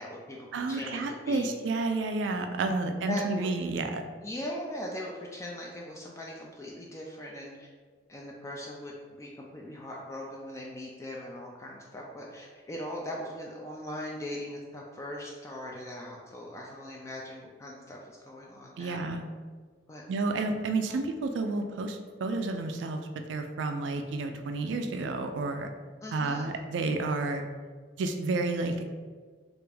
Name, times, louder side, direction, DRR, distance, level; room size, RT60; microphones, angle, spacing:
voice 1, 0.0-1.5 3.1-3.5 4.2-7.7 8.1-19.0 19.9-20.0 20.9-21.0 26.0-26.6, left 1 dB, 15° left, -2 dB, 0.3 m, -40 dB
voice 2, 0.5-4.0 18.8-19.2 20.1-23.0 23.3-25.7 26.1-27.4 28.0-28.9, right 3 dB, 85° right, 6 dB, 0.3 m, -30 dB
3.3 x 2.5 x 3.3 m, 1.5 s
head